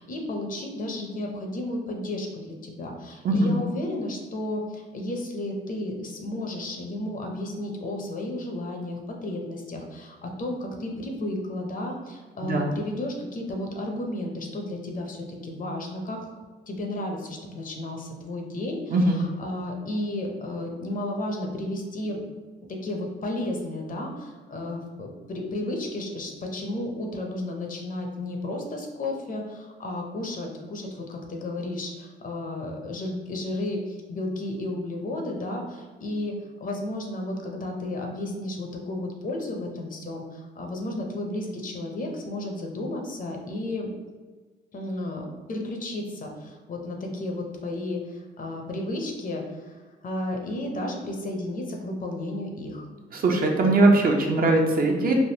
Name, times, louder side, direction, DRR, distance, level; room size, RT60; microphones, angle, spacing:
voice 1, 0.0-16.2 16.7-22.2 22.7-43.9 44.7-52.9, left 1 dB, 45° left, 1 dB, 0.7 m, -33 dB
voice 2, 18.9-19.2 53.1-55.1, right 2 dB, 45° right, 1 dB, 0.6 m, -20 dB
3.4 x 2.4 x 2.8 m, 1.3 s
cardioid pair, 90°, 20 cm